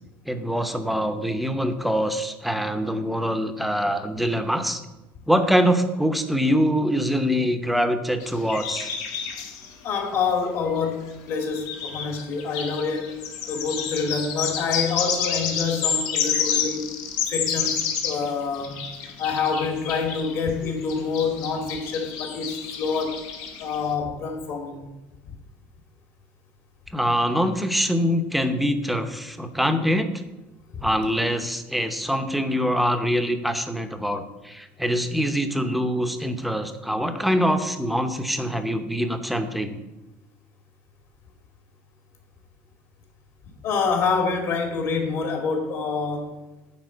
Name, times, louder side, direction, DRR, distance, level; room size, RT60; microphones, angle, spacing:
voice 1, 0.3-4.8 5.3-8.9 26.9-30.1 30.8-39.8, equal, ahead, 7 dB, 0.8 m, -24 dB
sound 1, 8.2-9.7 10.9-11.0 11.5-18.3 18.5-23.8, left 7 dB, 75° left, 1.5 m, -29 dB
voice 2, 9.8-13.2 13.5-16.9 17.3-18.8 19.2-23.2 23.6-24.9 30.7-30.8 43.6-46.3, left 5 dB, 55° left, 3 dB, 2.5 m, -27 dB
9.5 x 4.4 x 7.7 m, 1.0 s
cardioid pair, 135°, 6 cm